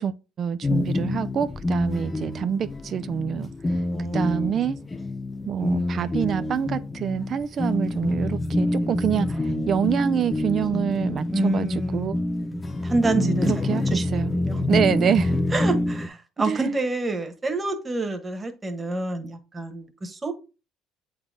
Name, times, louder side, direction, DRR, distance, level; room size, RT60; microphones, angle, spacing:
voice 1, 0.0-3.8 4.1-4.8 5.5-12.2 13.1-14.3 14.6-15.3 16.5-16.7, right 8 dB, 50° right, 0.4 m, -26 dB
sound 1, 0.6-16.1, left 2 dB, 20° left, 0.8 m, -27 dB
voice 2, 3.9-4.3 5.6-6.2 11.3-12.1 12.8-14.6 15.5-20.3, right 2 dB, 20° right, 1.4 m, -28 dB
7.9 x 4.0 x 3.8 m
supercardioid pair, 95°, 0 cm